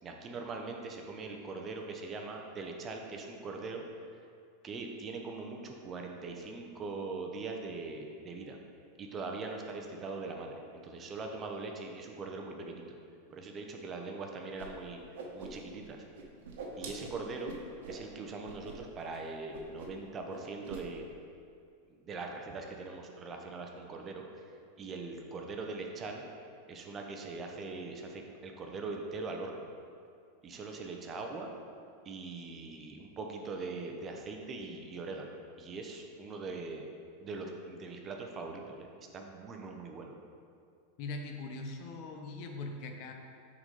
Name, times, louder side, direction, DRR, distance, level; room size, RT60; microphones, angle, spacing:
voice 1, 0.0-3.8 4.6-8.6 9.0-13.0 13.3-15.0 15.3-16.0 16.8-17.6 17.9-21.1 22.0-24.2 24.8-26.2 26.7-29.7 30.4-31.5 32.0-36.8 37.2-38.9 39.1-40.1, right 3 dB, 30° right, 2 dB, 0.8 m, -41 dB
Whoosh swoosh swish, 14.6-14.7 15.0-15.9 16.1-18.0 18.4-18.7 19.0-19.2 19.5-20.0 20.3-20.8, right 4 dB, 75° right, 1.1 m, -44 dB
voice 2, 41.0-43.1, left 3 dB, 55° left, 3 dB, 0.8 m, -41 dB
6.1 x 4.0 x 5.3 m, 2.4 s
hypercardioid pair, 115°, 0 cm